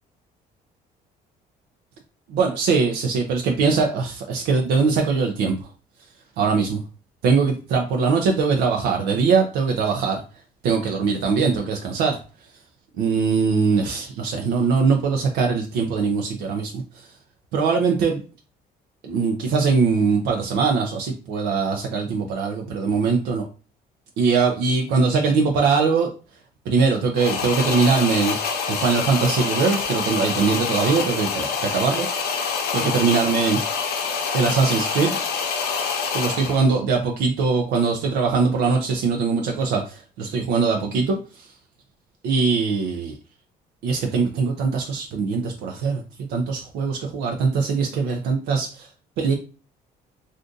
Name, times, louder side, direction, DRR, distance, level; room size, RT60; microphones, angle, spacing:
voice 1, 2.3-5.6 6.4-6.8 7.2-10.2 10.6-12.2 12.9-17.1 17.5-18.2 19.0-23.4 24.2-26.1 26.7-28.4 28.7-32.1 32.7-33.6 34.3-35.2 36.1-41.5 42.2-43.2 43.8-48.7 49.2-49.3, right 5 dB, 85° right, 3 dB, 0.5 m, -21 dB
sound 1, 27.2-36.7, left 5 dB, 70° left, 0.7 m, -26 dB
2.5 x 2.5 x 3.6 m, 0.35 s
cardioid pair, 110°, 17 cm